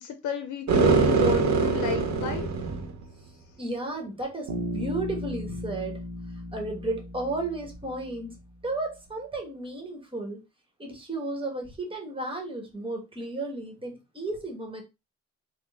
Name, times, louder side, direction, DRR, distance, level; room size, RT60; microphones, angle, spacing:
voice 1, 0.0-2.5, left 5 dB, 70° left, 7 dB, 0.7 m, -32 dB
sound 1, 0.7-3.0, right 4 dB, 65° right, 1.0 m, -23 dB
voice 2, 3.6-6.0 6.3-8.4 8.6-10.4 10.8-14.8, right 2 dB, 15° right, 2 dB, 1.4 m, -33 dB
Bass guitar, 4.5-8.4, left 1 dB, 85° right, 1.0 m, -36 dB
3.7 x 2.3 x 3.5 m, 0.25 s
cardioid pair, 90°, 30 cm